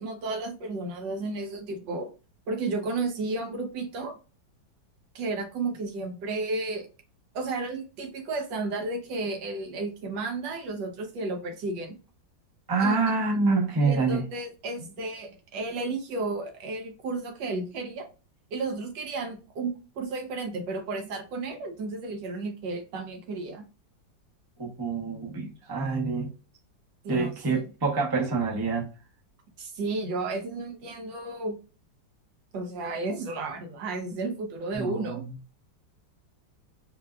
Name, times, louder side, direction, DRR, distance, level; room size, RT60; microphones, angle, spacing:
voice 1, 0.0-2.1 2.5-4.2 5.1-6.9 7.3-12.0 12.8-13.0 13.8-18.1 18.5-23.6 27.0-27.7 29.6-31.6 32.5-35.3, right 3 dB, 80° right, 1.4 m, -33 dB
voice 2, 12.7-14.2 24.6-26.3 27.1-28.9 34.7-35.2, right 4 dB, 30° right, 0.4 m, -26 dB
4.2 x 2.2 x 2.2 m
omnidirectional pair, 1.9 m